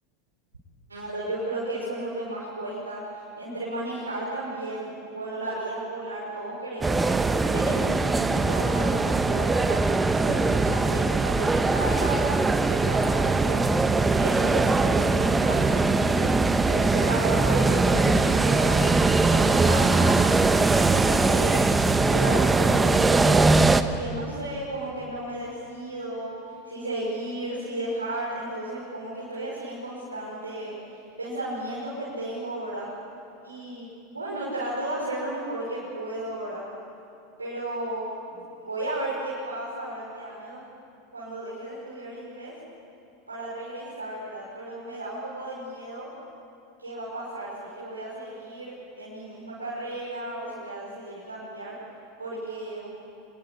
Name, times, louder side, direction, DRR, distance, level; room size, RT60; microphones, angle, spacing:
voice 1, 0.9-3.0 3.4-7.2 7.5-9.9 10.2-12.4 12.7-13.6 14.2-16.4 16.7-20.2 20.7-21.7 22.0-23.6 23.9-32.9 33.4-36.6 37.4-40.6 41.1-42.5 43.3-46.1 46.8-51.7 52.2-52.9, right 1 dB, 90° right, -7 dB, 5.7 m, -34 dB
sound 1, 6.8-23.8, right 3 dB, 15° right, 1.2 m, -21 dB
26.0 x 21.0 x 8.7 m, 2.6 s
figure-of-eight pair, 85°, 0 cm